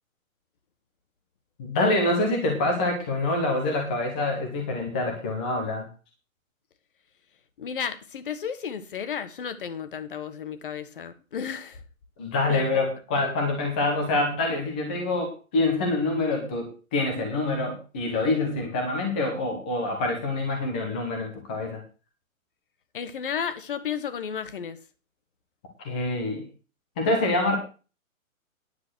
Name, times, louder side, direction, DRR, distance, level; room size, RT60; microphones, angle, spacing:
voice 1, 1.6-5.9 12.2-21.8 25.8-26.4 27.0-27.6, left 2 dB, 5° left, 0.7 m, -26 dB
voice 2, 7.6-11.8 12.5-12.7 22.9-24.8, left 7 dB, 40° left, 1.2 m, -33 dB
10.0 x 6.2 x 7.8 m
hypercardioid pair, 170°, 42 cm